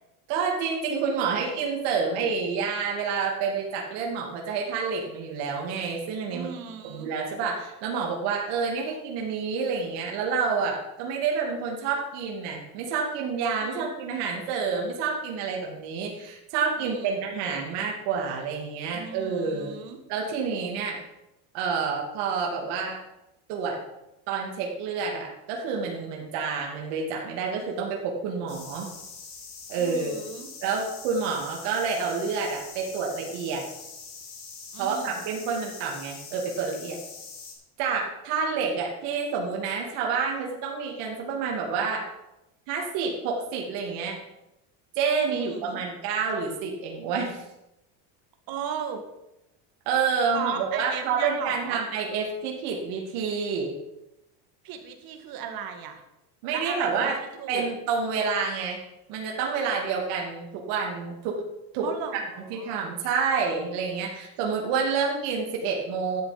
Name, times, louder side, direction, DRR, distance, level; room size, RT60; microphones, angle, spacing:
voice 1, 0.3-6.5 6.9-19.7 20.1-21.0 21.5-23.0 23.5-23.8 24.3-28.9 29.7-30.2 30.6-33.7 34.8-37.0 37.8-42.1 42.7-44.2 44.9-47.4 49.9-53.8 56.4-57.2 57.5-58.8 59.1-61.4 61.7-62.2 62.5-66.2, right 5 dB, 70° right, 0 dB, 2.6 m, -28 dB
voice 2, 6.3-7.1 13.6-13.9 16.8-17.2 18.9-20.0 29.8-30.5 34.7-35.2 45.3-45.8 48.5-49.0 50.3-51.8 54.6-56.0 56.5-57.7 61.8-62.7, right 7 dB, 50° right, 5 dB, 2.1 m, -36 dB
sound 1, 28.5-37.5, left 5 dB, 80° left, 4.2 m, -43 dB
12.5 x 8.3 x 5.2 m, 0.91 s
supercardioid pair, 130°, 45 cm